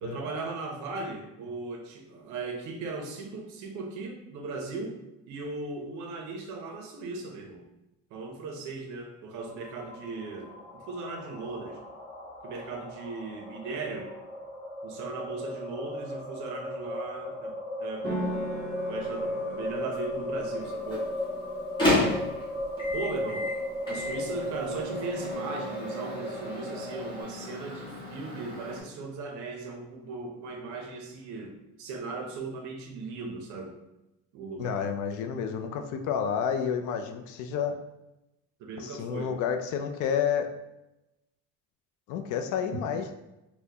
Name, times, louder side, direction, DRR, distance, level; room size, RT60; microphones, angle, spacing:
voice 1, 0.0-5.0 5.3-7.7 8.1-11.8 12.4-14.1 14.8-18.1 18.9-21.1 22.9-23.5 23.8-33.8 34.3-34.8 38.6-39.4, right 3 dB, 65° right, 3 dB, 0.7 m, -38 dB
sound 1, 9.4-27.2, left 1 dB, 15° right, 1.3 m, -36 dB
sound 2, 18.0-25.3, right 1 dB, 30° right, 1.0 m, -40 dB
Microwave oven, 20.6-28.8, left 1 dB, 15° left, 0.9 m, -33 dB
voice 2, 34.6-37.8 38.8-40.5 42.1-43.1, left 7 dB, 70° left, 6 dB, 0.4 m, -30 dB
4.2 x 2.2 x 2.8 m, 0.93 s
cardioid pair, 165°, 31 cm